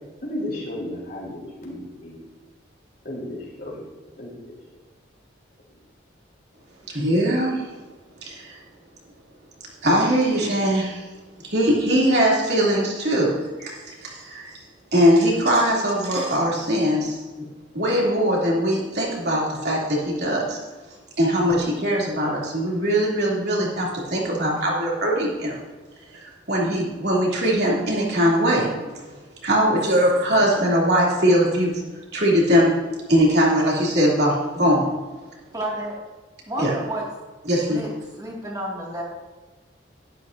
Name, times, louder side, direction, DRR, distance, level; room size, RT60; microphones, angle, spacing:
voice 1, 0.2-2.2 3.0-3.8 4.2-4.5, left 1 dB, 50° left, -3 dB, 3.6 m, -33 dB
voice 2, 6.9-7.7 8.2-8.6 9.8-11.1 11.4-13.3 13.6-14.6 14.9-17.5 17.7-20.6 21.2-25.6 26.1-28.7 29.4-31.7 32.1-32.8 33.1-34.9 36.6-36.7 37.5-37.8, equal, 60° right, -4 dB, 3.0 m, -21 dB
voice 3, 28.5-29.1 34.6-34.8 35.5-36.0 36.5-37.1 37.7-39.0, right 1 dB, 20° right, -4 dB, 2.3 m, -32 dB
11.5 x 11.5 x 2.7 m, 1.3 s
head